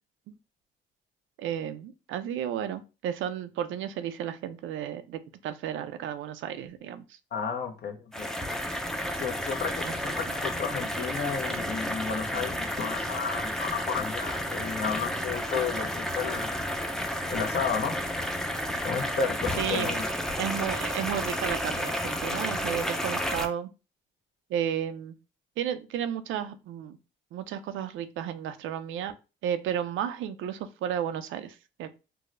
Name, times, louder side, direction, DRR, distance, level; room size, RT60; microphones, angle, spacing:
voice 1, 1.4-7.0 9.8-9.9 10.3-10.4 19.6-19.9 20.4-23.7 24.5-25.2 25.6-27.0 27.3-29.1 29.4-32.0, right 9 dB, 80° right, 0.4 m, -33 dB
voice 2, 7.3-8.3 9.2-16.6 17.3-18.0 18.8-20.1, left 6 dB, 55° left, 0.7 m, -32 dB
sound 1, 8.1-23.5, equal, 5° left, 0.4 m, -31 dB
4.6 x 2.0 x 2.5 m
cardioid pair, 90°, 20 cm